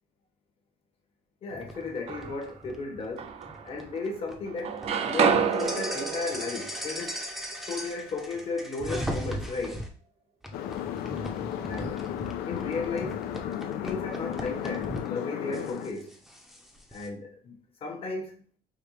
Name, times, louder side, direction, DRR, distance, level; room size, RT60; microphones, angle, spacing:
voice 1, 1.4-3.3 3.6-7.2 7.6-9.8 11.6-12.0 12.4-13.3 13.8-16.1 16.9-18.3, left 3 dB, 35° left, 1.0 m, -35 dB
sound 1, 1.5-9.9 10.4-15.1 15.5-17.1, equal, ahead, 0.6 m, -38 dB
sound 2, 1.7-2.6 3.2-4.2 4.5-8.4, right 6 dB, 40° right, 0.5 m, -30 dB
sound 3, 10.5-15.9, left 10 dB, 85° left, 0.5 m, -34 dB
5.0 x 2.9 x 3.2 m
cardioid pair, 150°, 15 cm